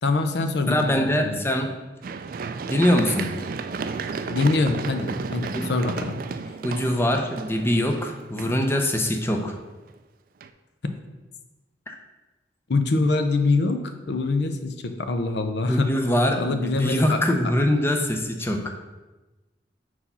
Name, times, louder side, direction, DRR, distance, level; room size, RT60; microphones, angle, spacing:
voice 1, 0.0-1.4 4.3-6.2 12.7-13.8 14.1-15.9 16.4-17.2, left 3 dB, 65° left, 7 dB, 0.6 m, -24 dB
voice 2, 0.7-1.7 2.7-3.3 5.5-5.7 6.6-9.6 11.9-12.0 15.7-18.7, left 1 dB, 15° left, 4 dB, 0.6 m, -23 dB
Run, 2.0-9.9 10.4-10.5, right 4 dB, 50° right, 0.3 m, -33 dB
4.7 x 4.3 x 5.5 m, 1.1 s
head